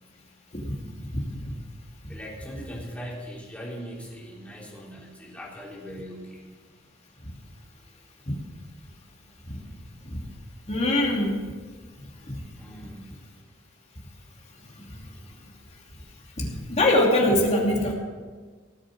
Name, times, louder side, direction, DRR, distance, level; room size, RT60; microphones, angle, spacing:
voice 1, 2.1-6.4 12.5-13.3, equal, 5° left, -5 dB, 3.6 m, -40 dB
voice 2, 10.7-11.4 12.3-12.4 16.4-17.9, left 1 dB, 35° left, -1 dB, 2.7 m, -23 dB
18.5 x 7.4 x 6.3 m, 1.4 s
head